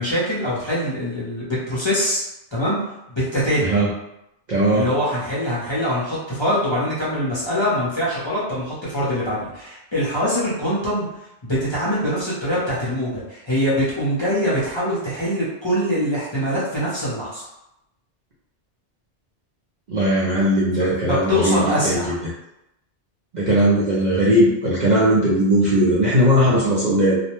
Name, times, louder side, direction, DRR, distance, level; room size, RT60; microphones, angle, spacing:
voice 1, 0.0-2.2 2.5-2.8 3.1-3.7 4.7-11.1 11.4-17.4 20.8-22.2, equal, 30° left, -9 dB, 0.6 m, -23 dB
voice 2, 4.5-4.9 19.9-22.3 23.3-27.2, equal, 55° right, -7 dB, 0.6 m, -18 dB
2.4 x 2.1 x 2.9 m, 0.86 s
omnidirectional pair, 1.1 m